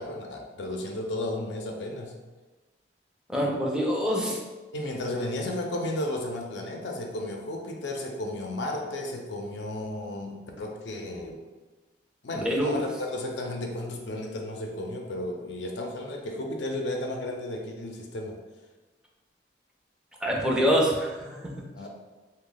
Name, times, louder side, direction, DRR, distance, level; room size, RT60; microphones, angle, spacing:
voice 1, 0.0-2.2 4.7-11.4 12.2-18.4 21.7-21.9, left 1 dB, 85° left, 1 dB, 0.5 m, -33 dB
voice 2, 3.3-4.4 12.3-12.8 20.2-21.7, equal, 5° right, -3 dB, 0.4 m, -25 dB
3.0 x 2.2 x 3.8 m, 1.2 s
head